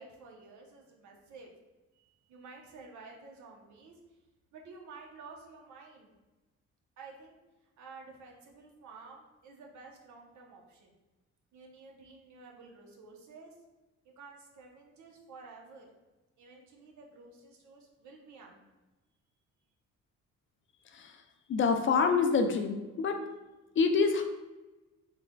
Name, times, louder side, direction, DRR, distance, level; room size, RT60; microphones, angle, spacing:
voice 1, 0.0-1.5 1.9-4.0 4.5-6.1 7.0-7.4 7.8-10.9 11.5-13.5 14.0-15.9 16.4-18.6, right 4 dB, 70° right, 0 dB, 0.8 m, -52 dB
voice 2, 21.5-23.2 23.8-24.2, left 5 dB, 45° left, 5 dB, 0.4 m, -26 dB
3.6 x 3.2 x 2.2 m, 1.1 s
cardioid pair, 90°, 30 cm